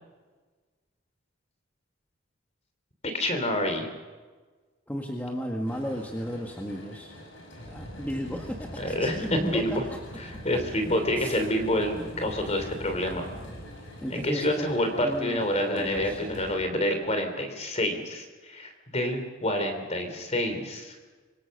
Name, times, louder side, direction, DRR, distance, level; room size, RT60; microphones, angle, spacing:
voice 1, 3.1-3.9 8.8-9.8 10.2-13.3 14.1-20.9, left 1 dB, 35° left, 6 dB, 3.3 m, -28 dB
voice 2, 4.9-7.2 7.7-9.6 11.1-11.4 14.0-14.7 15.0-16.2, equal, 10° left, 1 dB, 1.7 m, -34 dB
sound 1, 5.7-16.6, equal, 65° left, 6.3 m, -43 dB
25.0 x 24.0 x 6.7 m, 1.4 s
head